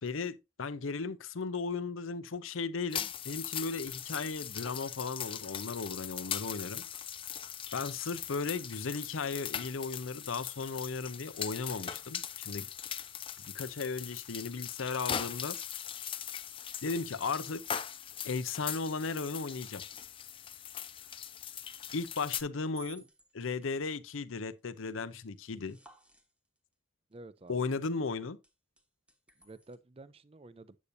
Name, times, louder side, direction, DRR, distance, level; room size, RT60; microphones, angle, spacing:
voice 1, 0.0-6.8 7.7-12.7 13.4-15.6 16.8-17.6 18.2-19.8 21.9-23.0 23.3-25.8 27.5-28.4, left 4 dB, 85° left, 0.7 m, -36 dB
sound 1, 2.9-22.4, left 9 dB, 25° left, 0.5 m, -40 dB
sound 2, 20.4-20.8 22.1-26.7 27.1-28.2 28.4-29.8, right 2 dB, 5° right, 1.1 m, -57 dB
voice 2, 27.1-27.7 29.4-30.8, right 2 dB, 30° right, 0.5 m, -51 dB
8.4 x 8.3 x 2.6 m
head